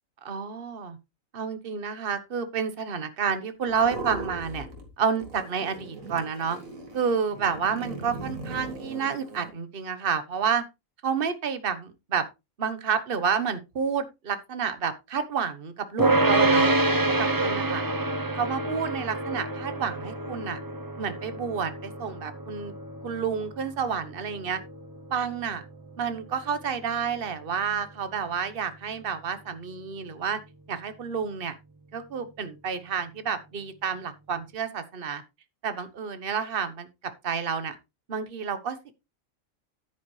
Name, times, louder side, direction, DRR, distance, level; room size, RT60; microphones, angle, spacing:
voice 1, 0.2-1.0 1.3-4.7 5.0-6.6 6.9-10.6 11.0-12.2 12.6-16.7 17.2-17.8 18.3-20.6 21.0-22.7 23.0-24.6 25.1-25.6 26.0-30.4 30.7-31.5 31.9-35.2 35.6-37.8 38.1-38.8, right 6 dB, 45° right, 1.3 m, -29 dB
sound 1, 3.7-4.9 5.2-9.5, right 2 dB, 85° right, 2.6 m, -39 dB
sound 2, 16.0-27.3, right 2 dB, 20° right, 0.6 m, -28 dB
10.5 x 9.1 x 3.2 m
omnidirectional pair, 1.4 m